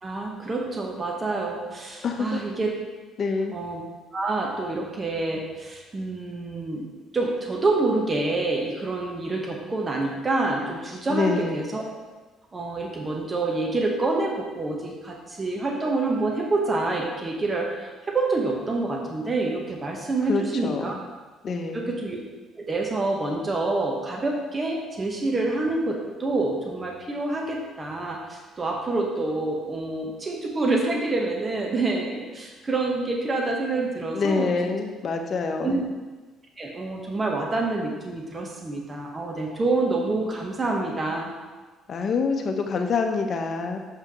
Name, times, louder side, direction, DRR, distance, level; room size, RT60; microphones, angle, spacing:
voice 1, 0.0-2.8 3.5-3.8 4.1-6.9 7.1-11.8 12.5-20.9 21.7-22.2 22.6-34.7 35.6-35.8 36.6-41.3, right 2 dB, 30° right, 0 dB, 1.2 m, -27 dB
voice 2, 2.0-2.4 3.2-3.6 11.1-11.6 20.3-20.8 21.4-21.9 34.1-35.8 41.9-43.8, left 4 dB, 50° left, 4 dB, 0.8 m, -26 dB
6.7 x 5.6 x 3.1 m, 1.3 s
supercardioid pair, 70°, 0 cm